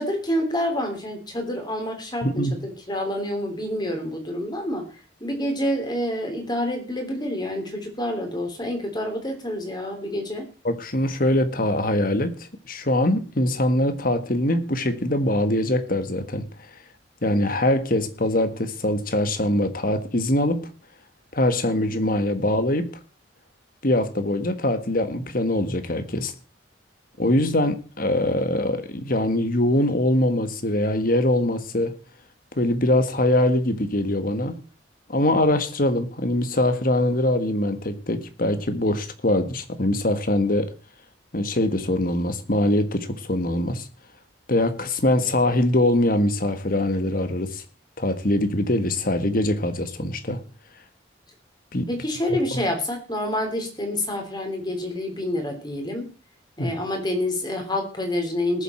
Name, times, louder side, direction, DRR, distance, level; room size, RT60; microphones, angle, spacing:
voice 1, 0.0-10.4 51.9-56.1 56.6-58.6, left 1 dB, 20° left, 3 dB, 3.3 m, -28 dB
voice 2, 2.2-2.5 10.6-12.4 12.7-16.5 17.2-20.7 21.3-22.9 23.8-26.3 27.2-31.9 32.6-34.6 35.1-40.7 41.3-43.9 44.5-47.6 48.0-50.4 51.7-51.9 52.5-52.6 56.6-56.7, left 1 dB, 50° left, 10 dB, 1.5 m, -23 dB
20.0 x 7.4 x 4.4 m, 0.37 s
head